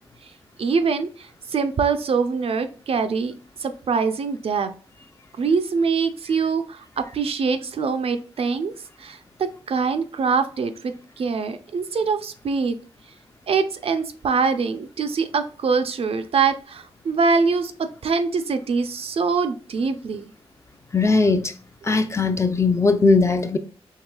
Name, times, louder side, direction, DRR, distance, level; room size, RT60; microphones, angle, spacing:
voice 1, 0.6-3.3 3.6-4.7 5.4-6.8 7.1-8.7 9.0-9.2 9.7-12.8 13.5-17.7 18.0-20.2, right 5 dB, 65° right, 0.4 m, -23 dB
voice 2, 20.9-21.5 21.9-23.6, left 3 dB, 25° left, 0.4 m, -19 dB
4.7 x 3.1 x 2.2 m
wide cardioid pair, 90°, 11 cm